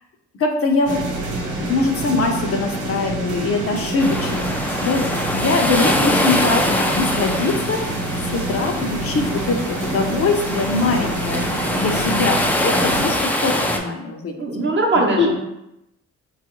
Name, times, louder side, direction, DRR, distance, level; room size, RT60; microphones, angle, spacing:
voice 1, 0.4-1.0 1.6-4.5 4.8-5.0 5.3-7.8 8.2-11.4 11.8-13.2 13.4-14.4 15.2-15.3, left 3 dB, 50° left, 3 dB, 0.6 m, -22 dB
sound 1, 0.8-13.1, right 2 dB, 85° right, 0.9 m, -27 dB
sound 2, 4.0-13.8, left 1 dB, 5° left, 0.3 m, -24 dB
voice 2, 11.7-12.0 14.4-15.3, right 2 dB, 40° right, 0 dB, 0.8 m, -21 dB
4.1 x 2.3 x 3.0 m, 0.86 s
cardioid pair, 90°, 30 cm